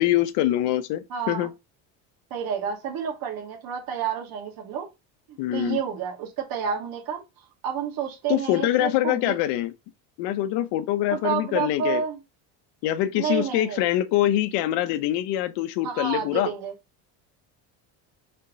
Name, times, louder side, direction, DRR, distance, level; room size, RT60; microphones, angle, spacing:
voice 1, 0.0-1.5 5.4-5.8 8.3-9.7 10.2-12.0 12.8-16.5, left 13 dB, 75° left, 0.8 m, -24 dB
voice 2, 1.1-1.5 2.3-4.9 5.3-7.2 7.6-9.4 11.1-12.2 13.1-13.8 15.8-16.7, right 7 dB, 55° right, 2.6 m, -30 dB
5.5 x 4.5 x 3.9 m
cardioid pair, 140°, 41 cm